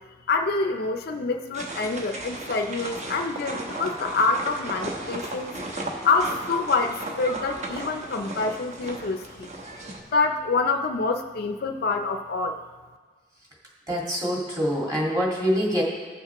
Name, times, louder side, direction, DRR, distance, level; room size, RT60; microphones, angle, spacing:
voice 1, 0.3-5.5 6.0-9.5 10.1-12.6, left 3 dB, 55° left, 5 dB, 0.5 m, -26 dB
sound 1, 1.5-10.0, right 1 dB, 40° right, 1.1 m, -35 dB
voice 2, 13.9-15.8, equal, 20° right, -3 dB, 1.9 m, -25 dB
16.0 x 6.6 x 2.9 m, 1.4 s
head